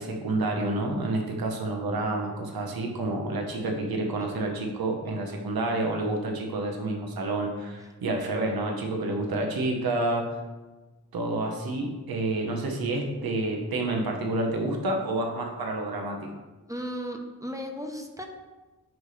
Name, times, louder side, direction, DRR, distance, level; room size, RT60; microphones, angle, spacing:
voice 1, 0.0-10.3 11.1-16.3, right 2 dB, 90° right, 2 dB, 1.2 m, -29 dB
voice 2, 16.7-18.3, equal, 10° right, 3 dB, 1.0 m, -35 dB
9.1 x 3.3 x 5.7 m, 1.2 s
cardioid pair, 55°, 35 cm